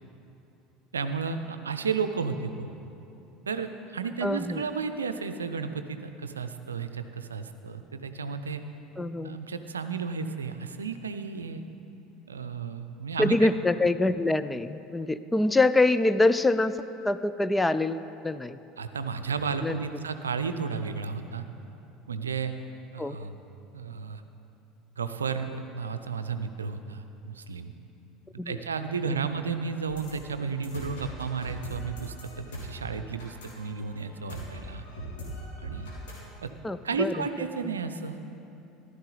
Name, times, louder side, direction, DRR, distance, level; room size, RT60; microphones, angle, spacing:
voice 1, 0.9-2.7 3.5-8.6 9.2-11.6 12.3-13.5 18.8-21.4 22.1-22.5 22.9-23.3 23.7-24.2 25.0-27.7 28.3-34.8 35.6-35.9 36.4-36.5 36.8-38.2, right 5 dB, 80° right, 9 dB, 0.5 m, -33 dB
voice 2, 4.2-4.6 9.0-9.4 13.2-16.8 17.0-18.6 19.6-19.8 23.0-23.2 28.4-28.6 29.1-29.2 36.6-37.7, left 2 dB, 10° left, 13 dB, 0.4 m, -25 dB
sound 1, 29.9-36.3, right 1 dB, 65° left, 3.1 m, -41 dB
14.5 x 12.0 x 4.0 m, 2.8 s
figure-of-eight pair, 70°, 0 cm